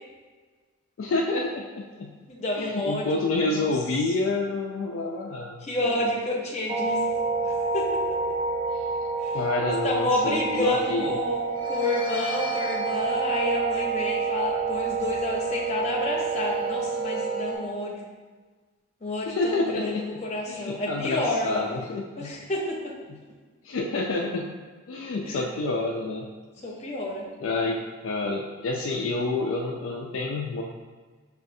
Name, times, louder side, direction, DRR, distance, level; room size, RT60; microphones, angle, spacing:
voice 1, 1.0-2.1 2.5-6.0 8.7-8.8 9.3-11.2 19.3-20.2 20.5-22.3 23.1-23.2 23.6-24.5 24.9-26.3 27.4-27.8 28.0-30.6, left 2 dB, 60° left, -1 dB, 0.3 m, -28 dB
voice 2, 2.3-3.7 5.6-7.0 7.4-8.0 9.2-9.4 9.8-18.1 19.0-21.7 22.2-22.9 23.2-23.3 25.2-25.4 26.6-27.2, left 1 dB, 30° left, -3 dB, 0.7 m, -29 dB
sound 1, 6.7-17.5, right 4 dB, 25° right, 0.4 m, -28 dB
6.1 x 2.4 x 2.6 m, 1.4 s
head